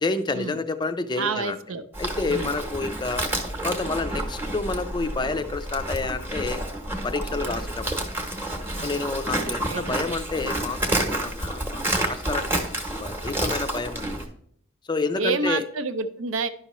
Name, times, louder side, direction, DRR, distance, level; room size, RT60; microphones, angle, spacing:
voice 1, 0.0-1.6 2.0-3.3 3.6-6.6 7.0-8.1 8.8-12.6 13.0-14.2 14.9-15.6, left 3 dB, 20° left, 10 dB, 0.4 m, -29 dB
voice 2, 1.2-1.8 2.2-2.5 8.8-9.1 9.4-10.1 15.2-16.5, right 3 dB, 70° right, 11 dB, 0.6 m, -29 dB
Livestock farm animals working animals, 1.9-14.3, right 1 dB, 10° right, 0.9 m, -29 dB
10.5 x 5.6 x 3.0 m, 0.66 s
head